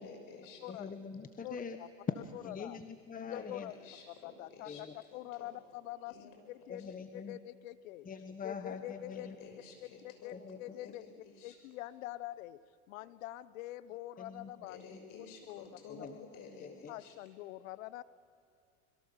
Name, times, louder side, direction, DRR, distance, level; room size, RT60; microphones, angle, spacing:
voice 1, 0.0-0.9 3.3-4.8 5.1-5.6 6.1-6.5 6.8-6.9 9.1-11.6 14.7-17.1, left 5 dB, 50° left, 4 dB, 6.3 m, -53 dB
voice 2, 0.7-1.8 2.1-2.2 2.4-3.7 4.7-4.9 6.7-7.4 8.0-9.4 10.3-10.6 14.2-14.5 15.9-16.1 16.6-16.9, left 5 dB, 20° left, 8 dB, 1.4 m, -43 dB
voice 3, 1.4-1.9 2.3-2.8 3.1-3.7 4.1-4.9 5.1-6.1 6.5-8.1 8.4-9.3 10.0-11.0 11.4-12.6 12.9-14.8 15.5-15.7 16.9-18.0, left 15 dB, 75° left, 17 dB, 1.0 m, -45 dB
26.0 x 22.0 x 7.3 m, 2.5 s
hypercardioid pair, 100°, 40 cm